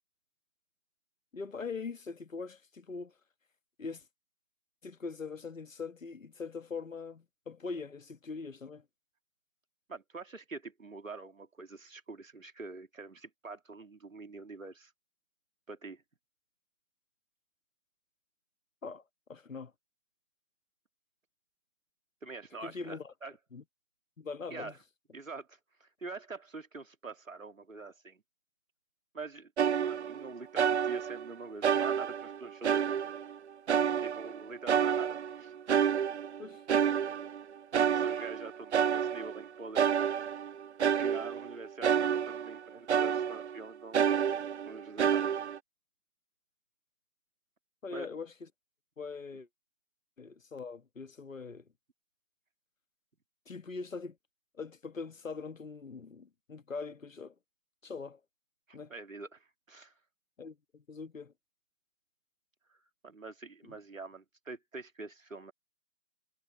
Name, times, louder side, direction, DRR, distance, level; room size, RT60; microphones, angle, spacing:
voice 1, 1.3-3.1 3.8-4.1 4.8-8.8 18.8-19.0 19.3-19.7 22.6-23.1 23.5-23.6 24.2-24.7 36.4-36.6 47.8-48.5 49.0-49.5 50.2-51.7 53.5-54.2 54.5-57.3 57.8-58.2 58.7-58.9 60.4-61.3 63.6-63.8, left 4 dB, 85° left, 1.5 m, -42 dB
voice 2, 9.9-14.9 15.7-16.0 22.2-23.3 24.5-24.8 25.1-28.2 29.1-29.5 29.9-32.8 34.0-35.5 37.9-40.0 41.0-44.0 44.7-45.3 47.9-48.1 58.7-59.9 62.7-62.8 63.0-65.5, right 3 dB, 90° right, 2.7 m, -45 dB
sound 1, 29.6-30.3 30.6-31.3 31.6-33.4 33.7-34.4 34.7-37.4 37.7-39.4 39.7-42.6 42.9-43.6 43.9-45.6, right 8 dB, 60° right, 0.5 m, -29 dB
figure-of-eight pair, 155°, 38 cm